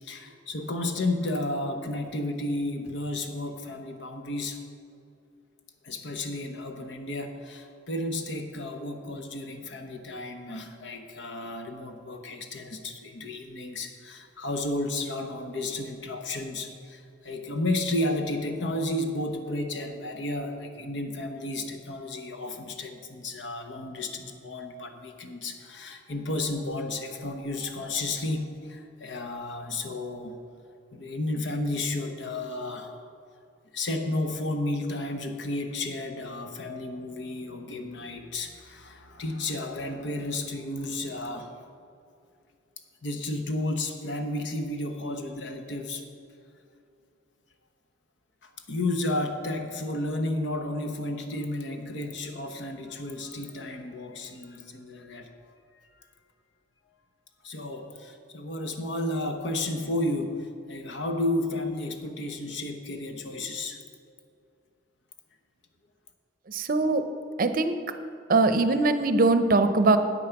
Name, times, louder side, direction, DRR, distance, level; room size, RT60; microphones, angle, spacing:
voice 1, 0.0-4.6 5.8-30.4 30.9-33.1 33.7-41.5 43.0-46.0 48.4-55.3 55.7-56.1 57.4-63.8, left 2 dB, 75° left, 5 dB, 1.1 m, -32 dB
voice 2, 66.5-67.0 67.4-67.8 68.3-70.0, right 3 dB, 50° right, 9 dB, 0.6 m, -21 dB
8.7 x 8.6 x 5.8 m, 2.5 s
head